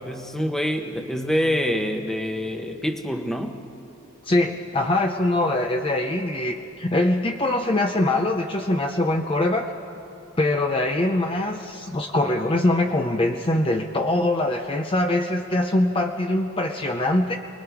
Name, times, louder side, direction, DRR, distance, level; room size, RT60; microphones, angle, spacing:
voice 1, 0.1-3.6, equal, ahead, 4 dB, 1.0 m, -26 dB
voice 2, 4.2-9.7 10.4-17.4, left 1 dB, 25° left, 3 dB, 0.6 m, -23 dB
28.5 x 21.0 x 4.7 m, 2.8 s
head